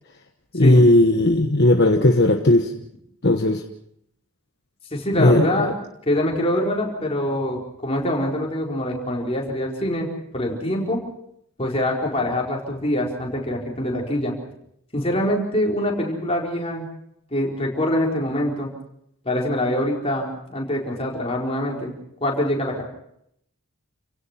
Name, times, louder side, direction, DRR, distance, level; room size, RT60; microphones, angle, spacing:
voice 1, 0.5-2.7 3.2-3.6 5.2-5.5, left 1 dB, 50° left, 4 dB, 1.3 m, -16 dB
voice 2, 4.9-5.7 6.1-10.1 10.3-11.0 11.6-14.3 14.9-16.9 17.3-18.7 19.2-21.9 22.2-22.8, left 1 dB, 25° left, -1 dB, 4.5 m, -24 dB
29.5 x 17.0 x 5.9 m, 0.73 s
head